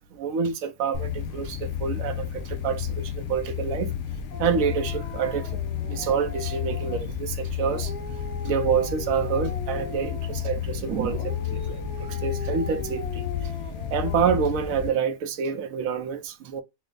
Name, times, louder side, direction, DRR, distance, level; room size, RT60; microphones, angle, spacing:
voice 1, 0.1-3.9 4.4-7.9 8.4-13.5 13.9-16.6, right 7 dB, 70° right, 1.0 m, -28 dB
sound 1, 0.9-14.9, left 9 dB, 75° left, 1.1 m, -31 dB
Dog, 4.3-7.1 7.6-10.7 11.1-14.6, left 1 dB, 35° left, 0.9 m, -40 dB
4.2 x 2.1 x 3.7 m
omnidirectional pair, 1.6 m